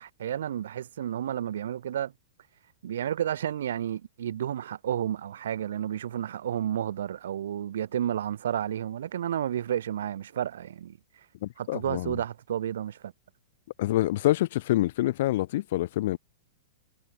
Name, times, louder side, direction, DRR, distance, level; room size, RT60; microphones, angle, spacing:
voice 1, 0.0-2.1 2.8-11.0 11.6-13.1, right 10 dB, 80° right, 0.4 m, -31 dB
voice 2, 11.4-12.2 13.8-16.2, left 15 dB, 60° left, 0.4 m, -26 dB
hypercardioid pair, 150°, 0 cm